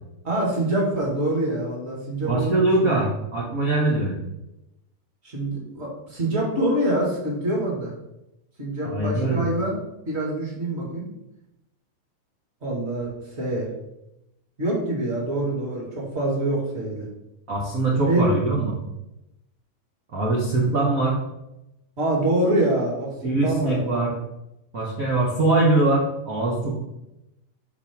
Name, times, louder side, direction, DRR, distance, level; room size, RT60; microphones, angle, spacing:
voice 1, 0.2-3.0 5.2-7.9 8.6-9.8 10.0-11.1 12.6-13.1 13.4-13.7 14.6-17.1 18.1-18.2 22.0-23.1 23.4-23.9, right 1 dB, 25° right, -3 dB, 1.6 m, -25 dB
voice 2, 2.2-4.2 8.8-9.4 17.5-18.8 20.1-21.2 23.2-24.1 24.7-26.8, right 2 dB, 80° right, -4 dB, 0.7 m, -22 dB
5.2 x 4.4 x 5.9 m, 0.88 s
omnidirectional pair, 3.6 m